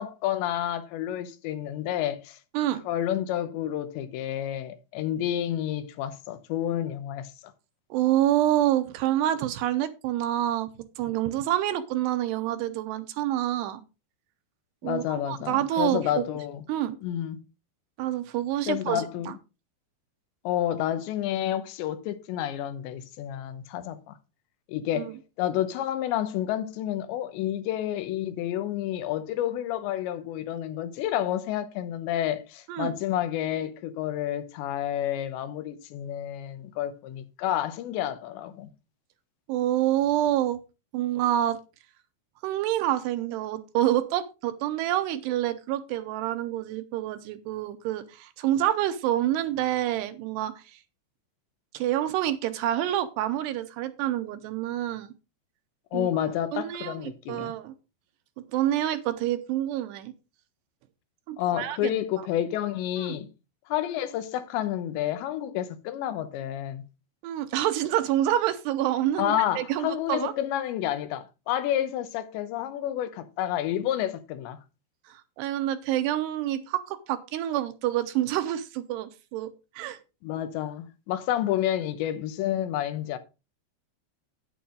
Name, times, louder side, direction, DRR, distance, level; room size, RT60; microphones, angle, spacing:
voice 1, 0.0-2.4 2.9-7.3 14.8-16.6 17.0-17.4 18.7-19.3 20.4-24.2 24.7-25.1 25.4-38.7 55.9-57.5 61.4-63.3 63.7-66.8 69.2-74.6 80.2-83.2, left 11 dB, 90° left, 3.2 m, -30 dB
voice 2, 7.9-10.7 11.0-13.8 14.8-16.2 16.7-17.0 18.0-19.0 24.9-25.2 32.7-32.9 39.5-40.6 40.9-41.6 42.4-50.6 51.7-55.1 55.9-56.1 56.5-57.0 57.3-57.7 58.5-60.1 61.3-61.8 63.0-63.2 67.2-70.3 75.1-79.5 79.8-80.0, right 12 dB, 80° right, 2.8 m, -27 dB
9.4 x 8.7 x 3.8 m
omnidirectional pair, 5.1 m